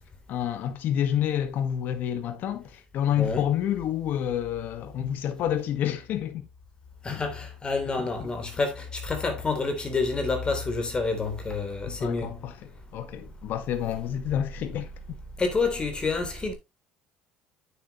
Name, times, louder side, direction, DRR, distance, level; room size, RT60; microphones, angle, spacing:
voice 1, 0.3-6.5 7.1-7.2 8.2-8.3 12.0-12.5 12.9-15.2, left 10 dB, 60° left, 1.6 m, -29 dB
voice 2, 3.2-3.5 7.0-12.4 15.4-16.5, left 3 dB, 25° left, 3.4 m, -28 dB
9.2 x 7.8 x 3.1 m
cardioid pair, 110°, 4 cm